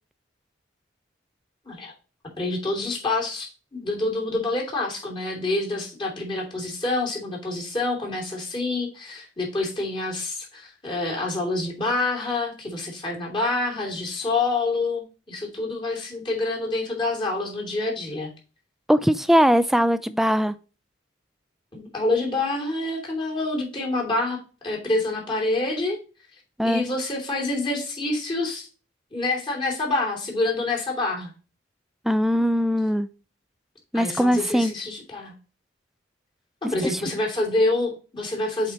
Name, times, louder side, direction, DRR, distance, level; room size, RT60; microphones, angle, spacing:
voice 1, 2.4-18.3 21.7-26.0 26.6-28.7 29.1-31.3 33.9-35.3 36.6-38.7, left 2 dB, 25° left, 2.9 m, -27 dB
voice 2, 18.9-20.5 26.6-26.8 32.1-33.1 33.9-34.7, equal, ahead, 0.4 m, -20 dB
8.1 x 4.4 x 3.0 m
head